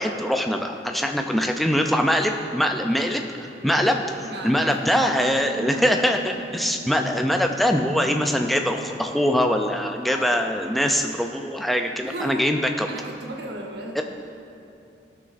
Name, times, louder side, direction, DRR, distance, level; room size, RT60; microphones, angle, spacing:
voice 1, 0.0-4.0 4.4-12.9 14.0-14.1, equal, ahead, 3 dB, 0.4 m, -23 dB
voice 2, 3.5-3.9 4.2-4.9 10.0-10.6 12.0-12.5 12.9-14.0, right 1 dB, 75° right, 0 dB, 1.0 m, -36 dB
sound 1, 4.7-9.9, right 1 dB, 55° left, 1.6 m, -40 dB
17.5 x 6.1 x 2.5 m, 2.7 s
head